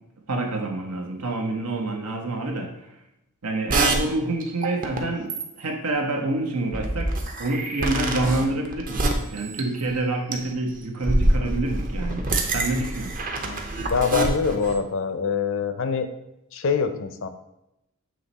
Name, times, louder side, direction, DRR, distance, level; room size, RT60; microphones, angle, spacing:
voice 1, 0.3-2.9 3.4-12.3 12.5-13.2, right 2 dB, 85° right, 2 dB, 1.1 m, -27 dB
sound 1, 3.7-4.0 4.4-5.0 5.3-5.6 6.7-10.0 10.3-10.5 11.0-14.8, right 2 dB, 40° right, 0.7 m, -26 dB
voice 2, 13.9-16.1 16.5-17.3, left 5 dB, 60° left, 9 dB, 0.5 m, -24 dB
7.5 x 3.2 x 4.1 m, 0.89 s
head